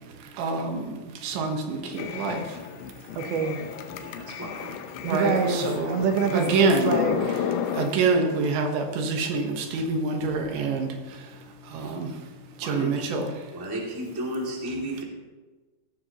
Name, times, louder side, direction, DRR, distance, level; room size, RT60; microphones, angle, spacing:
voice 1, 0.4-2.6 5.0-6.0 6.3-7.0 7.7-11.4 11.6-12.2 12.6-13.3, right 3 dB, 90° right, 3 dB, 3.7 m, -26 dB
sound 1, 1.8-7.9, left 8 dB, 85° left, 3.2 m, -32 dB
voice 2, 3.2-3.6 5.0-7.4, right 5 dB, 70° right, 5 dB, 2.7 m, -26 dB
voice 3, 4.0-4.7 5.1-5.3 12.6-13.1 13.5-15.0, right 1 dB, 10° right, -3 dB, 1.1 m, -33 dB
16.5 x 12.5 x 3.0 m, 1.3 s
omnidirectional pair, 5.0 m